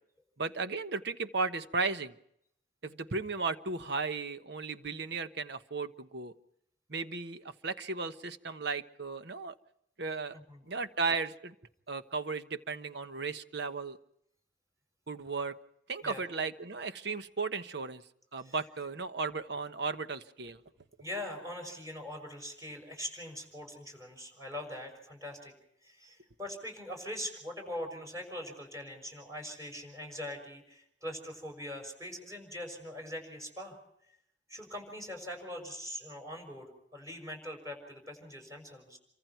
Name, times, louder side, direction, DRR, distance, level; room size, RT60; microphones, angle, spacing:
voice 1, 0.4-2.1 2.8-6.3 6.9-9.5 10.0-10.4 10.7-11.5 11.9-14.0 15.1-15.6 15.9-18.0 18.3-20.6, right 4 dB, 65° right, 10 dB, 1.2 m, -35 dB
voice 2, 21.0-25.5 25.8-33.8 34.5-39.0, left 1 dB, 20° right, 3 dB, 6.1 m, -42 dB
28.5 x 24.5 x 4.6 m, 0.75 s
head